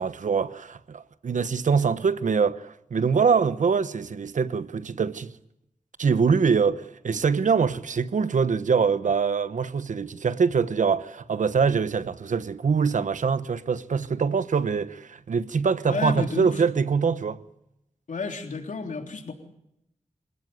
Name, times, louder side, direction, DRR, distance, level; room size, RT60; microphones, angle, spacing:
voice 1, 0.0-5.3 6.0-17.4, right 5 dB, 80° right, 1.1 m, -24 dB
voice 2, 15.8-16.6 18.1-19.3, left 4 dB, 80° left, 3.5 m, -31 dB
25.5 x 17.5 x 9.5 m
wide cardioid pair, 85°, 13 cm